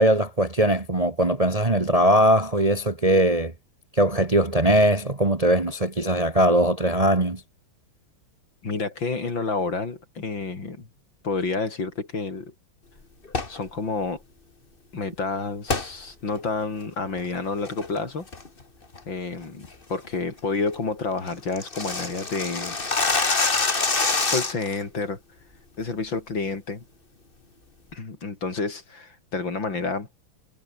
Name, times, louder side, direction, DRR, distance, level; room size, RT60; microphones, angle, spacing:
voice 1, 0.0-3.5 3.9-7.4, right 1 dB, 20° right, 1.5 m, -20 dB
voice 2, 8.6-10.9 11.2-12.5 13.5-14.2 14.9-18.3 19.0-22.8 24.3-25.2 25.8-26.8 27.9-30.1, left 3 dB, 60° left, 4.8 m, -29 dB
sound 1, 13.2-13.6 15.7-15.9 16.4-16.5 17.0-17.3 17.6-18.0 18.3-18.6 18.9-19.0 19.4-19.7 20.0-20.1 20.4-20.5 20.7-20.8 21.1-24.7, left 3 dB, 25° left, 2.2 m, -25 dB
omnidirectional pair, 2.4 m